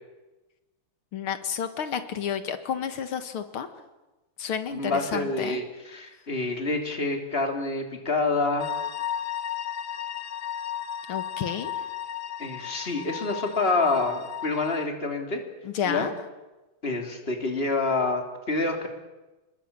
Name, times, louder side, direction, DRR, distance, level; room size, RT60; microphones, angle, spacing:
voice 1, 1.1-3.7 4.4-5.6 11.1-11.7 15.7-16.1, left 8 dB, 90° left, 9 dB, 2.4 m, -31 dB
voice 2, 4.7-8.7 12.4-15.4 15.8-16.1 16.8-18.9, left 3 dB, 30° left, 4 dB, 3.4 m, -27 dB
sound 1, 8.6-14.9, left 9 dB, 60° left, 1.5 m, -34 dB
28.5 x 20.5 x 8.7 m, 1.1 s
omnidirectional pair, 2.3 m